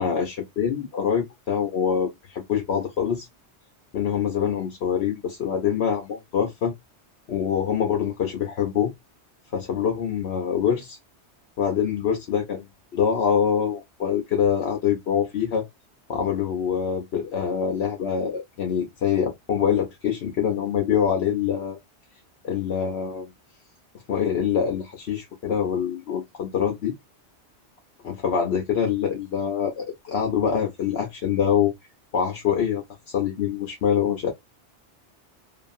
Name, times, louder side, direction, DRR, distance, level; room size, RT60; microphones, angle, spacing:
voice 1, 0.0-3.3 3.9-6.7 7.3-8.9 9.5-11.0 11.6-12.6 12.9-15.7 16.1-21.8 22.4-23.3 24.1-26.9 28.0-31.7 32.1-32.8 33.1-34.3, left 8 dB, 70° left, 1.0 m, -25 dB
2.8 x 2.5 x 2.5 m
omnidirectional pair, 1.1 m